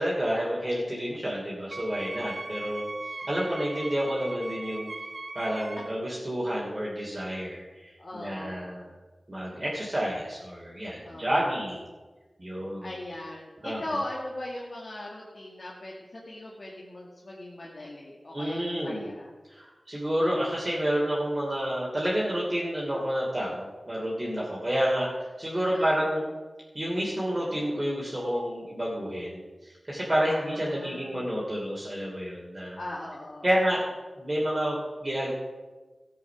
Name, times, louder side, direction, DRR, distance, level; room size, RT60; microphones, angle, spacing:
voice 1, 0.0-2.9 3.3-4.9 5.3-8.9 9.3-11.9 12.4-12.9 13.6-14.0 18.3-19.1 19.5-26.3 26.7-32.8 33.4-33.8 34.2-35.3, equal, 30° right, -5 dB, 2.9 m, -29 dB
Wind instrument woodwind instrument, 1.7-6.0, right 2 dB, 50° right, 0.8 m, -39 dB
voice 2, 8.0-8.8 11.0-11.4 12.8-19.3 25.5-26.1 30.3-31.2 32.8-33.5, left 1 dB, 55° left, -4 dB, 1.9 m, -39 dB
14.0 x 7.5 x 5.9 m, 1.3 s
wide cardioid pair, 55°, 0 cm